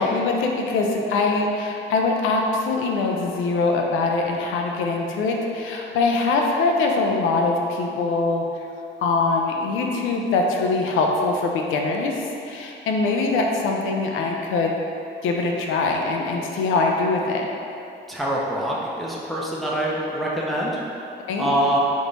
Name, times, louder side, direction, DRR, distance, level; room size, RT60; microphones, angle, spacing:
voice 1, 0.0-8.4 9.0-12.1 12.4-14.7 15.2-17.5 21.3-21.5, left 3 dB, 90° left, 1 dB, 0.5 m, -23 dB
voice 2, 18.1-20.8 21.4-21.8, right 1 dB, ahead, -5 dB, 0.6 m, -24 dB
3.6 x 2.9 x 3.9 m, 2.7 s
cardioid pair, 90°, 20 cm